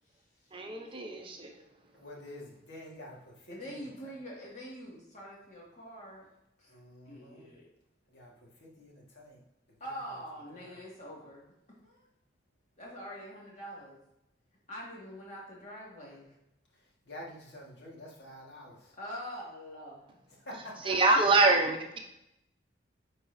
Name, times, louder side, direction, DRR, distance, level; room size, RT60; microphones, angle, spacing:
voice 1, 0.5-1.5 20.8-22.0, right 3 dB, 30° right, 2 dB, 0.7 m, -25 dB
voice 2, 1.9-3.8 6.7-7.5 8.1-9.4 10.5-10.8 17.1-18.9 20.4-20.9, left 1 dB, 70° left, -3 dB, 1.7 m, -48 dB
voice 3, 3.5-6.2 6.6-6.7 7.1-7.7 9.8-11.5 11.8-12.0 12.8-14.0 14.7-16.3 19.0-20.1, equal, 45° left, -4 dB, 2.0 m, -44 dB
9.7 x 4.1 x 2.7 m, 0.85 s
head